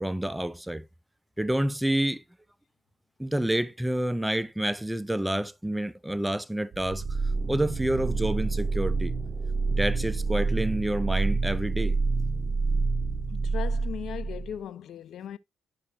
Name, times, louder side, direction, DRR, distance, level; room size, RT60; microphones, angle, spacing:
voice 1, 0.0-0.9 1.4-2.2 3.2-7.0 7.5-9.2 9.7-12.0, right 1 dB, 5° right, 0.3 m, -28 dB
sound 1, 6.7-14.6, right 3 dB, 40° right, 0.8 m, -28 dB
voice 2, 13.3-15.4, left 9 dB, 70° left, 0.5 m, -38 dB
11.0 x 5.5 x 2.3 m
cardioid pair, 90°, 0 cm